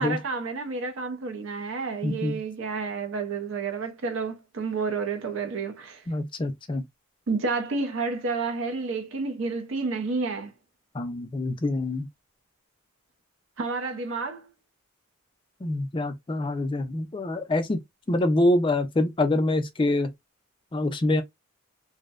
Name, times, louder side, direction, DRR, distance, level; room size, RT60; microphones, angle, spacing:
voice 1, 0.0-6.0 7.3-10.5 13.6-14.5, right 4 dB, 65° right, 0.5 m, -30 dB
voice 2, 2.0-2.4 6.1-6.8 10.9-12.1 15.6-17.8 18.1-20.1 20.7-21.2, left 2 dB, 25° left, 0.3 m, -25 dB
2.6 x 2.1 x 2.3 m
head